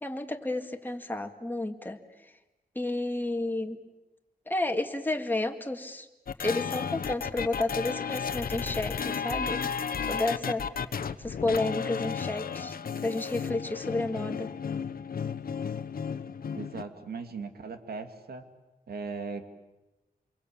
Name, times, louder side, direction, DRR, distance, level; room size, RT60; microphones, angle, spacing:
voice 1, 0.0-2.0 2.8-3.8 4.5-6.1 6.4-9.6 10.1-10.7 11.2-14.5, left 2 dB, 10° left, 5 dB, 2.0 m, -31 dB
sound 1, 6.3-16.8, left 6 dB, 65° left, 1.1 m, -33 dB
voice 2, 16.5-18.5 18.9-19.5, right 4 dB, 75° right, 7 dB, 2.4 m, -38 dB
27.5 x 23.0 x 8.7 m, 1.0 s
wide cardioid pair, 125°, 16 cm